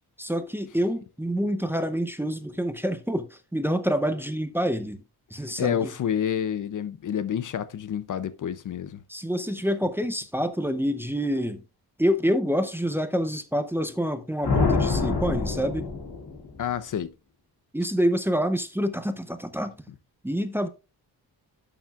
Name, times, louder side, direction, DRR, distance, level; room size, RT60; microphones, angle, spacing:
voice 1, 0.2-5.0 5.3-5.9 9.1-11.6 12.0-15.9 17.7-19.8 20.2-20.7, equal, 5° right, 0.6 m, -27 dB
voice 2, 5.4-9.0 16.6-17.1, left 9 dB, 50° left, 0.5 m, -29 dB
sound 1, 14.4-16.7, left 4 dB, 75° left, 2.4 m, -26 dB
11.5 x 7.1 x 2.4 m
wide cardioid pair, 145°, 39 cm